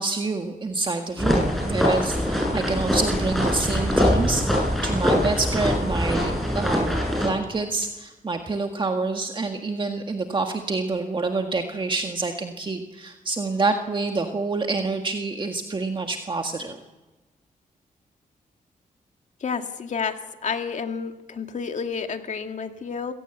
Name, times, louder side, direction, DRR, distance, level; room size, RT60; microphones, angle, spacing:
voice 1, 0.0-16.8, right 3 dB, 35° right, 4 dB, 1.7 m, -27 dB
sound 1, 1.2-7.3, equal, ahead, 7.7 m, -23 dB
voice 2, 19.4-20.2 20.4-23.1, left 6 dB, 60° left, 6 dB, 2.2 m, -30 dB
27.5 x 17.0 x 8.1 m, 1.2 s
cardioid pair, 95°, 14 cm